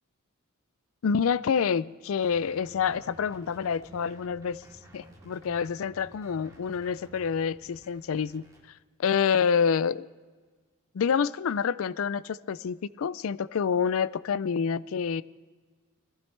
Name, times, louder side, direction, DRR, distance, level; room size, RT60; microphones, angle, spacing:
voice 1, 1.0-4.6 4.9-8.4 9.0-10.1 10.9-15.2, left 6 dB, 70° left, 18 dB, 0.4 m, -27 dB
sound 1, 2.2-8.6, right 1 dB, 15° right, 2.5 m, -53 dB
21.0 x 15.5 x 3.2 m, 1.4 s
head